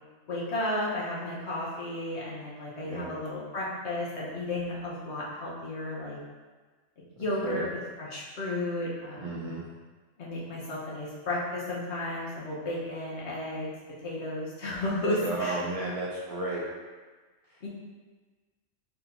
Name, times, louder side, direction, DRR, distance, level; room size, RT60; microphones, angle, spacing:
voice 1, 0.3-6.2 7.2-7.7 8.0-9.5 10.2-13.7 14.0-15.6 17.6-17.7, left 1 dB, 60° left, -6 dB, 1.3 m, -33 dB
voice 2, 9.2-9.6 15.2-16.6 17.5-17.7, right 2 dB, 60° right, -5 dB, 0.3 m, -33 dB
4.3 x 2.7 x 4.2 m, 1.3 s
omnidirectional pair, 1.3 m